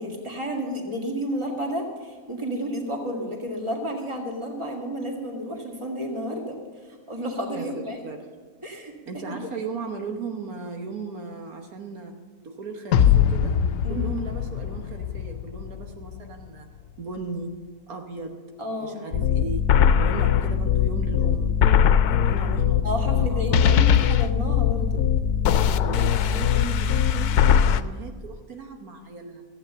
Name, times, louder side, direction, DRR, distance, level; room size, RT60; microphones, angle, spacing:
voice 1, 0.0-6.6 6.8-8.0 8.6-9.4 13.8-14.2 18.6-19.0 22.8-25.0, equal, 20° right, 1 dB, 2.0 m, -31 dB
voice 2, 7.6-8.2 9.1-12.1 12.4-13.5 13.9-16.7 17.0-17.5 17.9-18.3 18.8-21.5 22.1-23.8 25.6-29.5, right 4 dB, 75° right, 3 dB, 1.6 m, -36 dB
sound 1, 12.9-16.2, left 9 dB, 65° left, 0.9 m, -23 dB
sound 2, 19.1-27.8, left 8 dB, 85° left, 1.1 m, -20 dB
14.5 x 8.7 x 6.8 m, 1.5 s
omnidirectional pair, 1.6 m